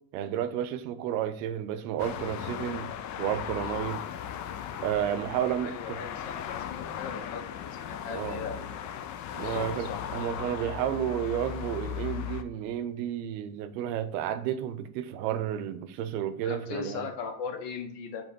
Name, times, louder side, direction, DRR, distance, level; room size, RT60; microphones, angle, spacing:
voice 1, 0.1-2.9 3.2-4.0 4.8-6.0 8.1-8.4 9.3-17.1, right 10 dB, 90° right, 0.7 m, -31 dB
sound 1, 2.0-12.4, left 9 dB, 40° left, 0.4 m, -37 dB
voice 2, 5.6-9.1 9.4-10.0 16.4-18.3, left 5 dB, 60° left, 1.3 m, -39 dB
5.2 x 3.6 x 5.1 m
cardioid pair, 125°, 47 cm